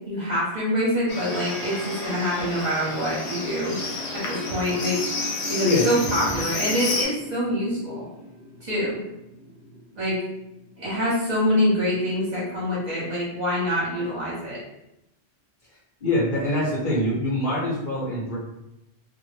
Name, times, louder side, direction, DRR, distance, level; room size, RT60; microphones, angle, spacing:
voice 1, 0.1-3.8 4.1-5.1 5.5-8.0 8.6-9.0 9.9-10.2 10.8-14.6, equal, 45° right, -7 dB, 0.8 m, -25 dB
sound 1, 1.0-12.0, equal, 65° right, 0.3 m, -40 dB
Livestock farm animals working animals, 1.1-7.1, left 3 dB, 80° left, 0.8 m, -31 dB
voice 2, 16.0-18.4, left 1 dB, 50° left, -6 dB, 0.7 m, -24 dB
2.1 x 2.0 x 3.0 m, 0.88 s
omnidirectional pair, 1.1 m